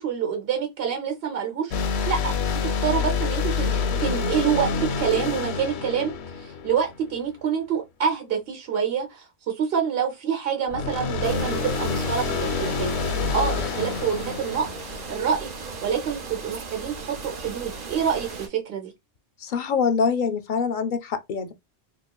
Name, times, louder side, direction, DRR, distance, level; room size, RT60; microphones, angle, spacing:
voice 1, 0.0-1.7 2.1-2.3 2.6-12.9 13.3-18.9, right 7 dB, 70° right, 1.0 m, -27 dB
sound 1, 1.7-7.2 10.7-15.4, left 5 dB, 90° left, 0.9 m, -27 dB
sound 2, 11.2-18.5, right 4 dB, 50° right, 0.6 m, -37 dB
voice 2, 19.4-21.5, left 5 dB, 60° left, 0.6 m, -24 dB
4.1 x 2.9 x 2.3 m
omnidirectional pair, 1.1 m